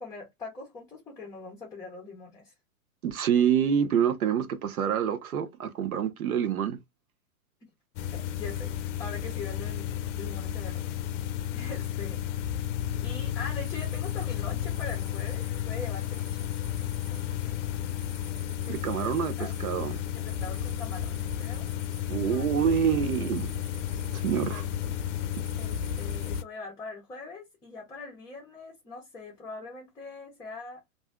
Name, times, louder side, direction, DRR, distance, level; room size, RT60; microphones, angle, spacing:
voice 1, 0.0-2.5 7.6-7.7 8.1-10.9 11.5-12.2 12.7-16.5 17.1-17.7 18.6-19.1 19.4-19.5 20.1-21.7 22.1-22.5 24.3-24.9 25.6-30.8, left 3 dB, 10° left, 0.6 m, -43 dB
voice 2, 3.0-6.8 18.7-20.0 22.1-23.5 24.1-24.6, right 8 dB, 85° right, 0.8 m, -27 dB
sound 1, 8.0-26.4, left 10 dB, 60° left, 0.5 m, -32 dB
sound 2, 13.6-26.4, equal, 5° right, 1.0 m, -52 dB
2.6 x 2.1 x 3.5 m
hypercardioid pair, 125°, 42 cm